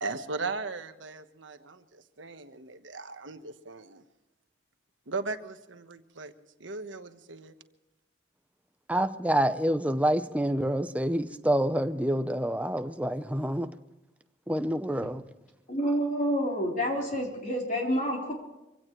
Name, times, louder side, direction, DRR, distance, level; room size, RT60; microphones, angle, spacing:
voice 1, 0.0-4.0 5.1-6.3 6.6-7.5, right 3 dB, 75° right, 1.2 m, -37 dB
voice 2, 8.9-13.7 14.5-15.2, right 1 dB, 5° right, 0.7 m, -27 dB
voice 3, 15.7-18.3, equal, 40° left, 3.8 m, -28 dB
25.0 x 17.0 x 3.2 m
head